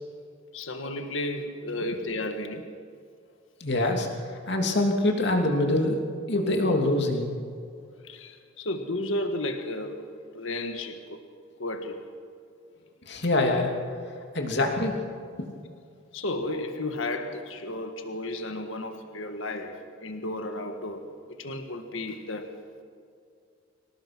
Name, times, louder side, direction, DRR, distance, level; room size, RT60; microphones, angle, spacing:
voice 1, 0.5-2.7 8.0-10.0 10.3-11.2 11.6-12.1 16.1-21.1 21.4-22.6, left 1 dB, 75° left, 6 dB, 1.6 m, -33 dB
voice 2, 3.6-4.1 4.5-6.0 6.3-7.3 13.1-13.8 14.3-15.0, left 2 dB, 55° left, 2 dB, 2.9 m, -24 dB
25.5 x 18.0 x 6.2 m, 2.3 s
head